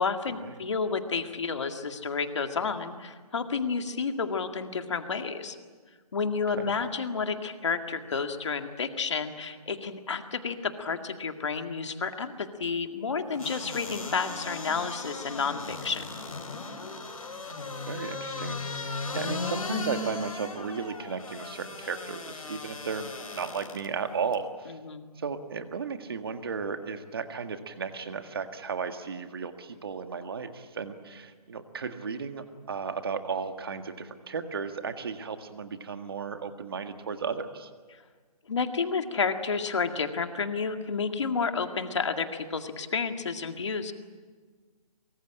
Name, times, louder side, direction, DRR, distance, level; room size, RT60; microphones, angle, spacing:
voice 1, 0.0-5.6 6.1-16.0 24.8-25.1 38.5-43.9, left 5 dB, 45° left, 6 dB, 2.0 m, -30 dB
sound 1, 13.4-23.9 24.3-24.4, left 3 dB, 65° left, 4.0 m, -37 dB
voice 2, 17.5-24.8 25.2-37.7, right 5 dB, 35° right, 8 dB, 1.8 m, -35 dB
24.0 x 23.5 x 8.9 m, 1.5 s
hypercardioid pair, 175°, 20 cm